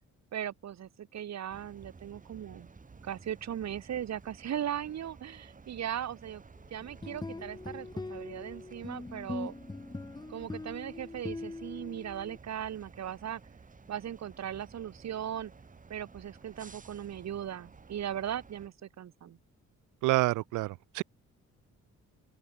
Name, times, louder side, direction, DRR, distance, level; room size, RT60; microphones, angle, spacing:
voice 1, 0.3-2.7 3.0-6.4 6.7-9.5 10.3-13.4 13.9-15.5 15.9-19.4, right 10 dB, 60° right, 2.9 m, -38 dB
sound 1, 1.5-18.7, right 4 dB, 25° right, 1.9 m, -54 dB
sound 2, 6.8-12.4, left 2 dB, 15° left, 1.2 m, -41 dB
voice 2, 20.0-21.0, right 19 dB, 85° right, 0.5 m, -28 dB
open air
cardioid pair, 90°, 30 cm